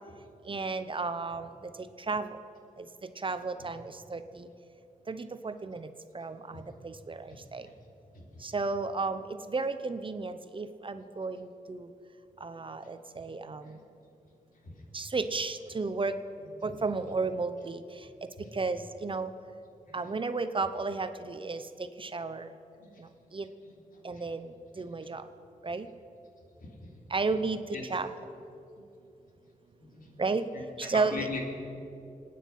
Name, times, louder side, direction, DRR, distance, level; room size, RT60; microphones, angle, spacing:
voice 1, 0.5-1.5 2.1-2.3 3.2-4.5 5.1-5.9 6.1-7.7 8.4-11.9 12.4-13.8 14.9-16.1 16.6-17.8 18.5-19.3 19.9-22.5 23.3-23.5 24.0-25.2 25.6-25.9 27.1-27.6 27.9-28.1 30.2-30.5 30.8-31.3, right 3 dB, 35° right, 10 dB, 0.8 m, -33 dB
voice 2, 7.3-7.7 8.1-8.2 13.7-13.8 14.6-14.7 16.6-16.7 18.4-18.5 19.9-20.0 22.8-22.9 23.6-23.7 24.1-24.2 26.6-26.9 27.7-27.8 28.8-28.9 29.8-30.1 30.9-31.4, left 3 dB, 75° left, 0 dB, 3.0 m, -40 dB
26.5 x 9.5 x 5.6 m, 2.7 s
wide cardioid pair, 100°, 14 cm